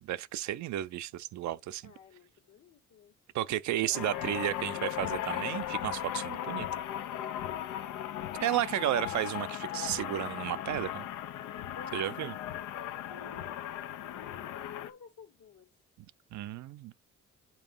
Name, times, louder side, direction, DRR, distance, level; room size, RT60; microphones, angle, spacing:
voice 1, 0.0-1.9 3.3-6.7 8.4-11.1 11.9-12.3 16.3-16.9, right 13 dB, 70° right, 0.5 m, -33 dB
voice 2, 1.8-3.1 3.8-4.9 7.8-8.7 11.7-15.7, left 6 dB, 70° left, 1.5 m, -53 dB
sound 1, 3.9-14.9, left 11 dB, 90° left, 0.7 m, -37 dB
7.8 x 2.9 x 5.3 m
cardioid pair, 90°, 30 cm